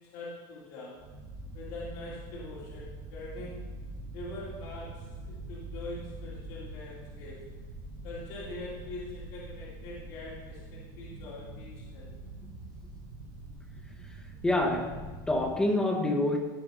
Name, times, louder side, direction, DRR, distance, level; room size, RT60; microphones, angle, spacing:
voice 1, 0.1-1.0 1.5-3.6 4.1-7.4 8.0-12.1, left 2 dB, 55° left, -7 dB, 2.7 m, -43 dB
sound 1, 0.9-15.6, right 1 dB, 40° right, 1.8 m, -44 dB
voice 2, 14.4-16.4, left 1 dB, 5° left, 3 dB, 0.7 m, -27 dB
15.0 x 5.3 x 3.8 m, 1.4 s
supercardioid pair, 175°, 10 cm